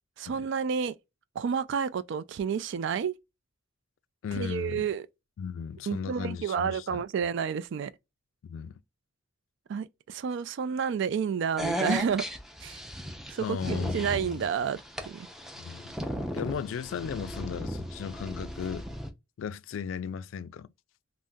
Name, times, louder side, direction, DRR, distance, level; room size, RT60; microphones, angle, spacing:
voice 1, 0.2-0.9 1.4-3.1 4.3-5.0 5.9-7.9 9.7-12.3 12.6-12.8 13.3-14.8 15.1-15.3, right 7 dB, 65° right, 0.3 m, -30 dB
voice 2, 4.2-4.9 5.4-7.0 8.4-8.8 13.4-14.4 15.6-15.9 16.2-18.9 19.4-20.7, left 7 dB, 80° left, 0.3 m, -36 dB
sound 1, 11.6-19.1, equal, ahead, 0.5 m, -36 dB
3.5 x 2.1 x 2.6 m
head